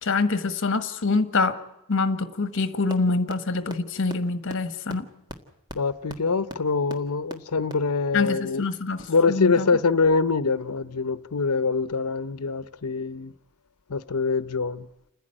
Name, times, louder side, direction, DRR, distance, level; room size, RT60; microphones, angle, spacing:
voice 1, 0.0-1.6 1.9-5.1 8.1-9.7, left 3 dB, 60° left, 1.4 m, -25 dB
sound 1, 2.9-3.0 3.3-3.4 3.7-3.8 4.1-4.2 4.5-4.6 4.9-5.0 5.3-5.4 5.7-5.8 6.1-6.2 6.5-6.6 6.9-7.0 7.3-7.4 7.7-7.8, right 1 dB, 20° right, 1.7 m, -35 dB
voice 2, 5.7-8.6 9.1-13.3 13.9-14.9, left 4 dB, 90° left, 0.8 m, -24 dB
29.5 x 10.5 x 8.9 m
head